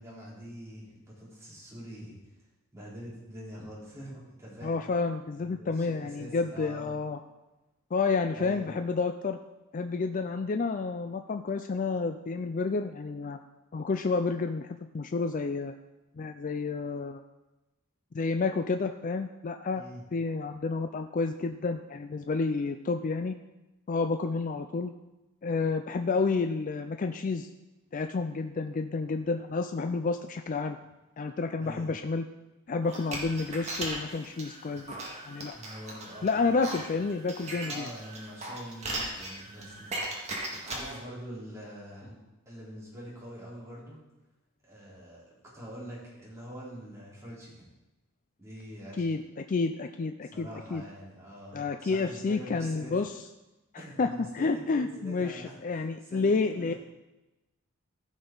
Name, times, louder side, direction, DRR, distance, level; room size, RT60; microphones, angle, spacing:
voice 1, 0.0-2.2 2.7-4.7 5.4-6.8 8.4-8.7 19.7-20.0 31.6-31.9 35.5-36.8 37.5-40.0 40.6-42.2 42.5-44.0 44.6-47.6 48.4-49.1 50.2-52.9 53.7-55.6 56.0-56.8, equal, 15° right, -8 dB, 3.9 m, -45 dB
voice 2, 4.6-7.2 7.9-9.4 9.7-13.4 13.7-14.7 14.9-15.7 16.2-17.2 18.1-19.8 20.1-23.3 23.9-24.9 25.4-27.5 27.9-30.8 31.2-32.2 32.7-34.9 35.3-35.6 36.2-37.9 49.0-49.2 49.5-50.8 51.5-53.1 53.7-56.7, left 4 dB, 35° left, 7 dB, 0.4 m, -30 dB
sound 1, 32.8-41.0, right 2 dB, 30° right, 1.9 m, -38 dB
15.0 x 6.3 x 3.9 m, 1.0 s
head